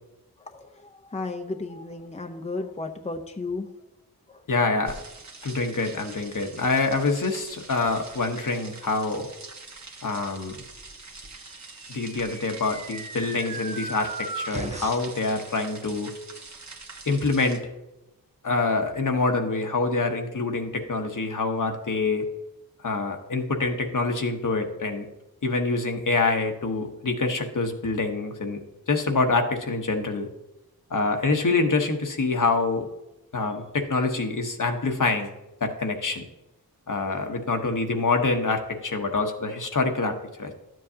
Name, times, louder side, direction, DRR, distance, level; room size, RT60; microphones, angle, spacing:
voice 1, 0.4-3.7 4.3-4.4, left 3 dB, 15° left, 5 dB, 0.7 m, -34 dB
voice 2, 4.5-5.0 5.4-9.3 10.0-10.6 11.9-16.1 17.1-17.6 18.4-22.2 22.8-25.1 25.4-28.6 28.9-30.3 30.9-32.9 33.3-35.3 35.6-36.2 36.9-40.5, left 3 dB, 55° left, 4 dB, 1.1 m, -26 dB
sound 1, 4.9-17.6, right 3 dB, 50° right, 1.2 m, -44 dB
sound 2, 11.7-15.2, right 3 dB, 20° right, 0.5 m, -36 dB
12.0 x 7.6 x 2.8 m, 0.95 s
wide cardioid pair, 55°, 37 cm